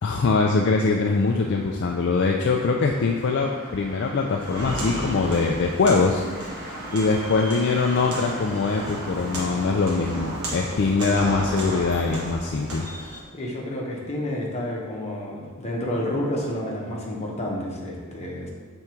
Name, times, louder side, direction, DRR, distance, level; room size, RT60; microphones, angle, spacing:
voice 1, 0.0-12.9, left 4 dB, 50° left, 1 dB, 0.4 m, -23 dB
Motor vehicle (road), 0.9-11.0, right 1 dB, 45° right, 1.2 m, -40 dB
Walk footsteps, 4.4-13.2, equal, 85° right, 1.2 m, -33 dB
voice 2, 13.3-18.5, left 1 dB, 30° left, -3 dB, 1.0 m, -30 dB
6.6 x 3.5 x 4.4 m, 1.5 s
head